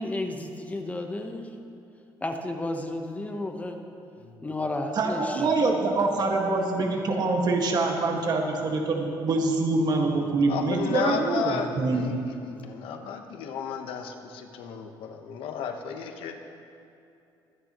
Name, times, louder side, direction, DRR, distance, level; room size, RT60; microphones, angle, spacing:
voice 1, 0.0-1.5 2.2-3.8 4.4-5.5, left 2 dB, 15° left, 4 dB, 1.0 m, -32 dB
voice 2, 4.2-4.5 10.1-16.4, left 7 dB, 85° left, 5 dB, 1.1 m, -34 dB
voice 3, 5.0-12.1, right 3 dB, 50° right, 1 dB, 1.8 m, -25 dB
23.5 x 9.3 x 3.0 m, 2.6 s
cardioid pair, 110°, 9 cm